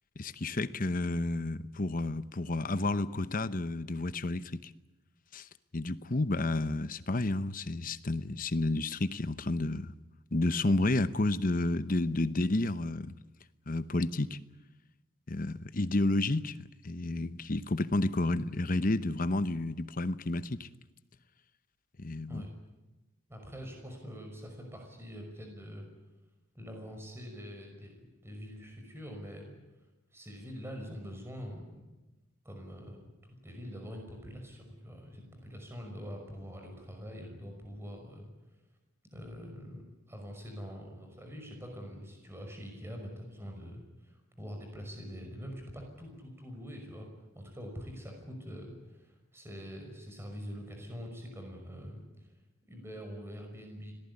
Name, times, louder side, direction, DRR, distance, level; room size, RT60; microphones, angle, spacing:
voice 1, 0.2-4.7 5.3-5.5 5.7-9.9 10.3-13.1 13.7-14.4 15.3-16.6 16.8-20.7 22.0-22.4, left 2 dB, 40° left, 0.9 m, -31 dB
voice 2, 23.3-25.9 26.5-29.6 30.1-31.9 32.4-38.3 39.1-47.1 47.3-52.3 52.7-53.9, equal, 10° right, 5.7 m, -44 dB
26.0 x 18.5 x 9.8 m
head